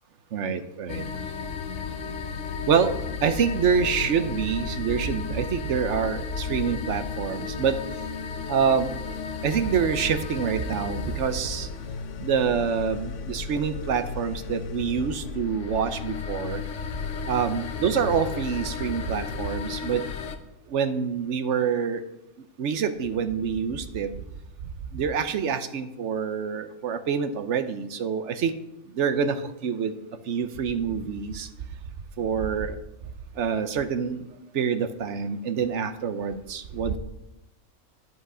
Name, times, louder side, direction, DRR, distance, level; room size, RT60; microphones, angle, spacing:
voice 1, 0.3-1.1 2.7-2.9 3.2-7.8 8.5-9.0 9.4-11.7 12.2-16.6 17.3-20.0 20.7-22.0 22.6-24.1 24.9-28.5 28.9-29.9 30.3-31.5 32.2-32.8 33.4-34.2 34.5-37.0, right 6 dB, 60° right, 10 dB, 1.0 m, -26 dB
sound 1, 0.9-20.4, left 5 dB, 60° left, 1.1 m, -34 dB
11.0 x 8.1 x 4.9 m, 0.90 s
omnidirectional pair, 1.5 m